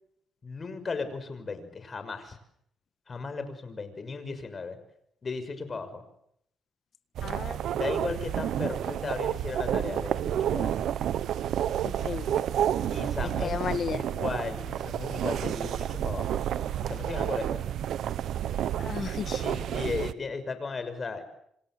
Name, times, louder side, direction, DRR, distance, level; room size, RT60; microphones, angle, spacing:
voice 1, 0.4-2.4 3.1-4.8 5.2-6.0 7.7-10.9 12.9-13.6 13.9-16.4 16.8-17.6 19.4-21.2, left 4 dB, 35° left, 10 dB, 6.1 m, -36 dB
voice 2, 7.2-7.6 11.8-12.4 13.4-14.0 18.8-19.4, left 6 dB, 50° left, 13 dB, 1.6 m, -33 dB
sound 1, 7.2-20.1, right 10 dB, 75° right, 1.1 m, -30 dB
27.5 x 27.0 x 7.8 m, 0.74 s
cardioid pair, 90°, 0 cm